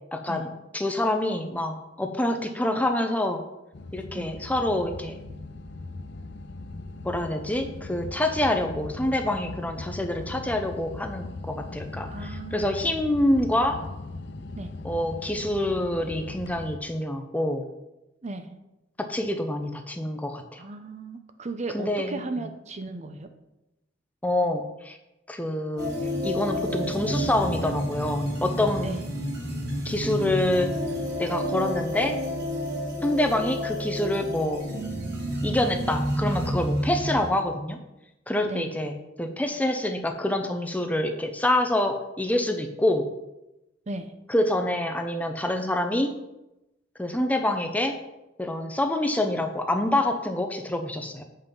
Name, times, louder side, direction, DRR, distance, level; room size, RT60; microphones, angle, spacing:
voice 1, 0.1-0.5 0.7-3.4 3.9-5.2 7.0-13.8 14.8-17.6 19.0-20.6 21.7-22.2 24.2-25.0 25.3-25.9 26.2-28.9 29.8-30.7 31.2-32.2 33.0-34.6 35.4-37.8 38.3-38.9 39.2-43.0 44.3-46.1 47.0-47.9 48.4-51.2, left 1 dB, 10° left, 5 dB, 0.6 m, -26 dB
sound 1, 3.7-16.8, left 2 dB, 60° left, 0.6 m, -39 dB
voice 2, 12.0-12.7 14.6-14.7 18.2-18.6 20.6-23.3 28.8-29.0 38.4-38.7 43.9-44.1, right 2 dB, 35° right, 8 dB, 0.6 m, -35 dB
sound 2, 25.8-37.3, equal, 55° right, 2.8 m, -30 dB
7.8 x 5.6 x 5.3 m, 0.95 s
head